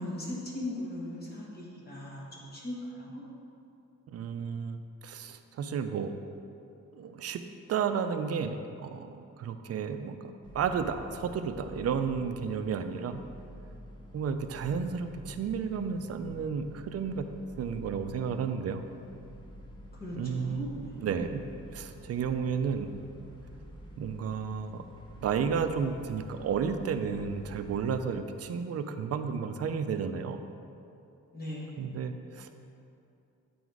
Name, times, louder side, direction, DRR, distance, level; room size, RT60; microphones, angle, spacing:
voice 1, 0.0-3.2 19.9-21.3 31.3-31.8, left 1 dB, 30° left, -4 dB, 1.4 m, -39 dB
voice 2, 4.1-6.1 6.9-13.2 14.1-17.3 17.6-18.8 20.2-21.4 21.7-22.9 24.0-24.8 25.2-30.4 31.8-32.5, right 6 dB, 55° right, 8 dB, 0.4 m, -32 dB
sound 1, 10.4-28.0, equal, 15° left, 0.7 m, -49 dB
8.4 x 4.0 x 4.6 m, 2.7 s
wide cardioid pair, 165°, 31 cm